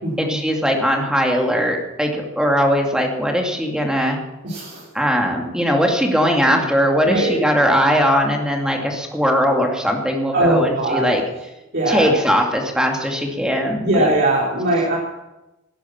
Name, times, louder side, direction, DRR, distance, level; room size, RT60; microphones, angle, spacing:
voice 1, 0.2-4.2 4.9-11.2 11.9-14.1, equal, 5° right, 1 dB, 2.5 m, -19 dB
voice 2, 4.4-4.8 7.0-7.3 10.3-11.1 11.7-12.1 13.8-15.0, right 1 dB, 55° right, -6 dB, 4.1 m, -20 dB
18.5 x 10.5 x 7.3 m, 0.99 s
head